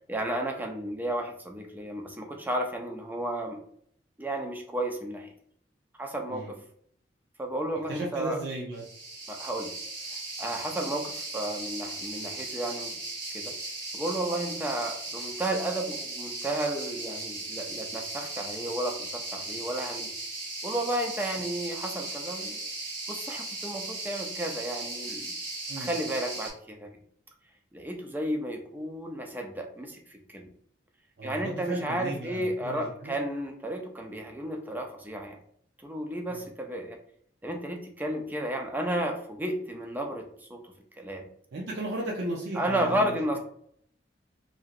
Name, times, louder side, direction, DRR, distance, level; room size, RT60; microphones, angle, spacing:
voice 1, 0.1-3.6 4.2-5.3 6.0-6.6 7.4-8.4 9.3-9.7 10.4-13.0 13.3-13.5 13.9-20.1 20.6-22.6 23.1-25.3 25.8-26.9 27.7-30.5 31.2-35.4 35.8-37.0 37.4-41.2 42.6-43.4, right 1 dB, 10° right, 2 dB, 0.4 m, -33 dB
voice 2, 7.9-8.9 25.7-25.9 31.2-33.2 36.3-36.5 41.5-43.4, right 1 dB, 65° right, -3 dB, 0.5 m, -35 dB
sound 1, 8.8-26.5, right 2 dB, 50° right, 1.4 m, -37 dB
2.9 x 2.6 x 2.4 m, 0.65 s
head